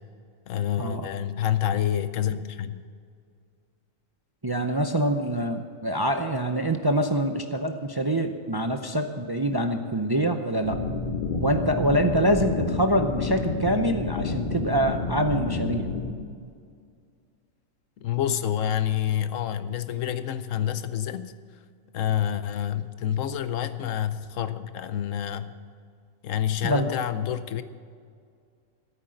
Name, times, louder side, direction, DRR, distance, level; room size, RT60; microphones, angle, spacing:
voice 1, 0.5-2.9 18.0-21.3 21.9-25.5 26.2-27.6, left 10 dB, 75° left, 1.1 m, -28 dB
voice 2, 4.4-10.8 11.4-15.9 26.6-26.9, right 1 dB, 25° right, 0.5 m, -25 dB
sound 1, 10.6-16.1, left 3 dB, 40° left, 1.5 m, -29 dB
14.5 x 8.9 x 7.8 m
omnidirectional pair, 1.4 m